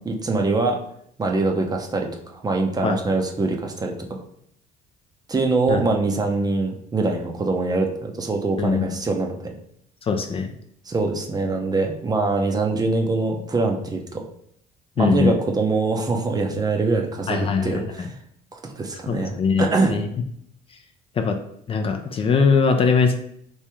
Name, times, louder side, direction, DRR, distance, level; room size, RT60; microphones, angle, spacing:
voice 1, 0.0-0.8 1.2-4.2 5.3-9.5 10.9-14.2 15.0-18.1 18.5-19.9, right 3 dB, 25° right, 3 dB, 0.6 m, -23 dB
voice 2, 10.1-10.5 15.0-15.4 17.3-17.8 19.1-20.1 21.2-21.4 21.7-23.1, left 5 dB, 35° left, 5 dB, 0.4 m, -21 dB
3.0 x 2.7 x 3.4 m, 0.68 s
cardioid pair, 110°, 17 cm